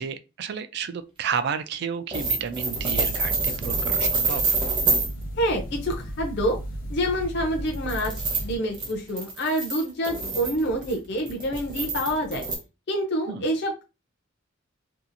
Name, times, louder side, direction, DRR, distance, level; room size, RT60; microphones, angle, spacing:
voice 1, 0.0-4.5 13.3-13.5, right 6 dB, 55° right, 0.3 m, -31 dB
sound 1, 2.1-5.1 7.6-12.6, right 3 dB, 25° right, 0.7 m, -27 dB
sound 2, 2.7-8.6, right 1 dB, 80° left, 0.9 m, -35 dB
voice 2, 5.4-6.6 6.9-8.1 8.4-12.4 12.9-13.8, equal, 55° left, 0.5 m, -27 dB
2.7 x 2.4 x 2.5 m
head